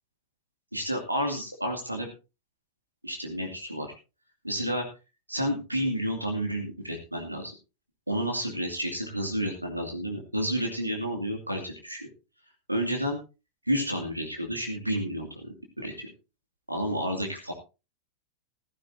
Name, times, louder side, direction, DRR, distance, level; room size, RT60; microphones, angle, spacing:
voice 1, 0.7-2.1 3.0-3.9 4.4-4.8 5.3-7.5 8.1-12.1 12.7-13.2 13.7-16.1 16.7-17.5, equal, 85° right, 2 dB, 2.5 m, -30 dB
15.0 x 14.0 x 2.8 m, 0.30 s
figure-of-eight pair, 90°, 0 cm